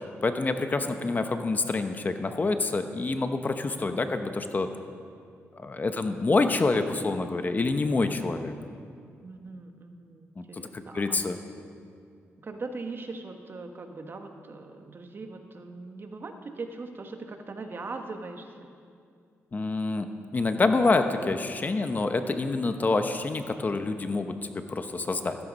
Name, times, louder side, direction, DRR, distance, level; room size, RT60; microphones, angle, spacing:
voice 1, 0.2-4.7 5.5-8.5 10.4-11.4 19.5-25.4, left 3 dB, 35° left, 7 dB, 1.0 m, -27 dB
voice 2, 3.8-4.2 9.2-11.3 12.4-18.7, right 3 dB, 45° right, 5 dB, 1.5 m, -40 dB
15.0 x 13.5 x 5.4 m, 2.3 s
cardioid pair, 85°, 5 cm